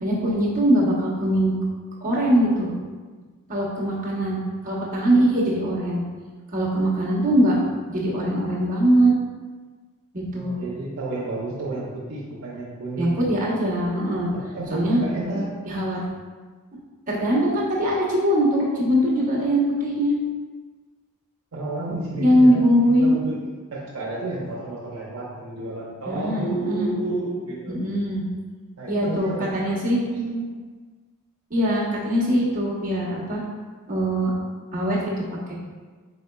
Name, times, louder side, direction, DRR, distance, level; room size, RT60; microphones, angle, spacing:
voice 1, 0.0-1.6 2.0-2.7 3.5-6.0 6.5-7.6 7.9-9.1 10.1-10.6 13.0-14.3 14.7-15.0 15.7-16.0 17.1-20.1 22.2-23.1 26.1-26.9 27.7-28.2 28.9-30.0 31.5-33.4 33.9-34.3 34.7-35.0 35.5-35.6, equal, 35° right, -6 dB, 0.9 m, -21 dB
voice 2, 10.3-13.3 14.5-15.6 21.5-27.8 28.8-29.8 30.0-30.5, right 2 dB, 65° right, -5 dB, 0.6 m, -31 dB
4.1 x 3.9 x 2.2 m, 1.4 s
head